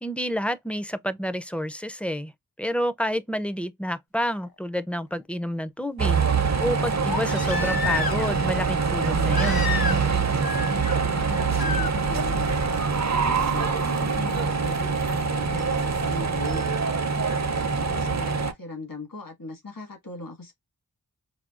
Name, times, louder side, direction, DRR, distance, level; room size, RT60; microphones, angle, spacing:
voice 1, 0.0-2.3 2.6-6.2 6.6-9.7, equal, 5° left, 0.4 m, -29 dB
Crying sobbing, 4.4-4.5 7.1-8.4 9.3-10.2 10.4-11.0 11.6-11.9 13.5-13.6, left 6 dB, 85° left, 0.8 m, -30 dB
sound 1, 6.0-18.5, right 5 dB, 50° right, 0.6 m, -24 dB
voice 2, 10.9-12.4 13.2-16.6 17.2-20.5, left 2 dB, 65° left, 1.6 m, -39 dB
4.8 x 2.2 x 2.4 m
wide cardioid pair, 55°, 36 cm